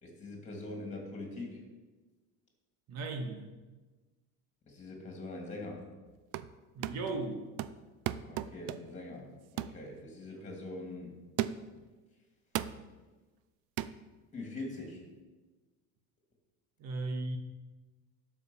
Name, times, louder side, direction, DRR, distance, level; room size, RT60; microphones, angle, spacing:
voice 1, 0.0-1.6 4.7-5.9 8.3-11.2 14.3-15.0, left 2 dB, 20° left, 1 dB, 2.6 m, -43 dB
voice 2, 2.9-3.5 6.7-7.4 16.8-17.4, right 3 dB, 50° right, 5 dB, 1.5 m, -36 dB
sound 1, 6.1-6.6 6.8-7.2 7.6-9.0 9.6-9.8 10.3-10.5 11.4-11.8 12.6-12.9 13.8-14.0, right 12 dB, 75° right, 0.6 m, -36 dB
12.0 x 5.1 x 7.1 m, 1.3 s
cardioid pair, 160°, 33 cm